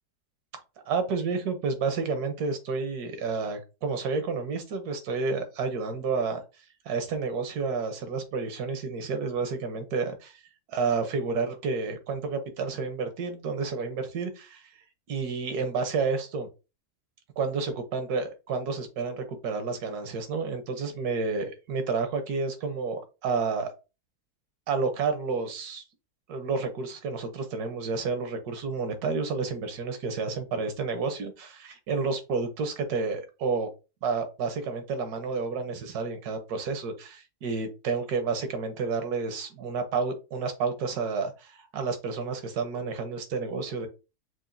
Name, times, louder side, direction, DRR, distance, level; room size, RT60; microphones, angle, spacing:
voice 1, 0.8-6.4 6.9-10.4 10.7-14.6 15.1-16.5 17.4-23.7 24.7-25.8 26.3-33.7 34.0-43.9, right 4 dB, 80° right, 8 dB, 1.4 m, -30 dB
6.0 x 2.5 x 2.6 m, 0.30 s
omnidirectional pair, 1.6 m